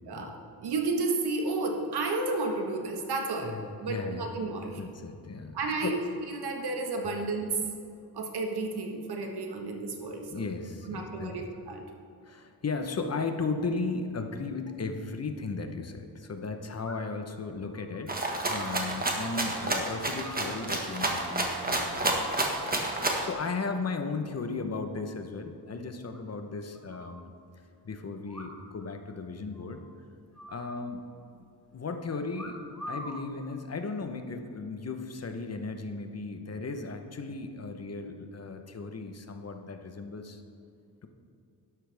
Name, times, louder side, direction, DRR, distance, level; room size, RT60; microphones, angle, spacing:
voice 1, 0.1-4.8 5.5-7.6 8.1-10.5 10.9-11.8, right 3 dB, 75° right, 3 dB, 1.6 m, -32 dB
voice 2, 3.4-4.3 4.8-6.0 7.0-7.1 10.3-11.5 12.2-18.1 18.5-22.2 22.6-27.3 27.8-29.8 30.5-31.0 31.4-32.6 32.9-40.4, left 4 dB, 40° left, 6 dB, 1.0 m, -36 dB
sound 1, 16.8-17.3 17.7-19.7 20.0-21.0 21.8-22.3 22.6-23.0 23.4-24.0 24.2-24.3 24.6-24.7 25.0-25.1 25.4-25.5 26.1-27.2 28.2-28.9 29.1-29.2 29.5-29.9 30.3-31.3 32.3-33.2 34.0-34.3, equal, ahead, 2.3 m, -46 dB
Rattle (instrument), 18.1-23.3, right 2 dB, 20° right, 1.6 m, -29 dB
12.0 x 11.5 x 3.5 m, 2.5 s
cardioid pair, 95°, 39 cm